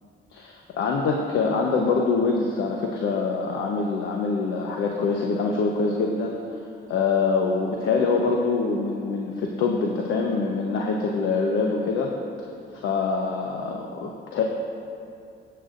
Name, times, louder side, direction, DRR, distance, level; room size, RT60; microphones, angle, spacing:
voice 1, 0.3-6.4 6.9-12.1 12.7-14.4, left 4 dB, 85° left, 0 dB, 1.0 m, -24 dB
20.0 x 8.9 x 2.6 m, 2.4 s
cardioid pair, 90°, 20 cm